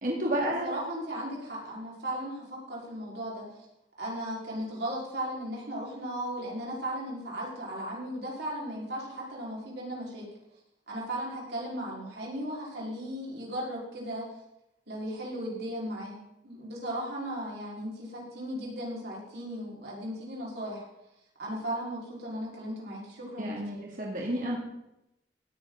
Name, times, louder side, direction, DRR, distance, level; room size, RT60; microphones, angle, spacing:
voice 1, 0.0-0.8 23.4-24.6, right 1 dB, 45° right, -2 dB, 2.7 m, -31 dB
voice 2, 0.6-3.4 4.0-10.3 10.9-14.2 14.9-16.2 16.4-20.8 21.4-23.6, right 1 dB, 65° right, -4 dB, 5.1 m, -36 dB
18.0 x 9.8 x 4.1 m, 0.85 s
head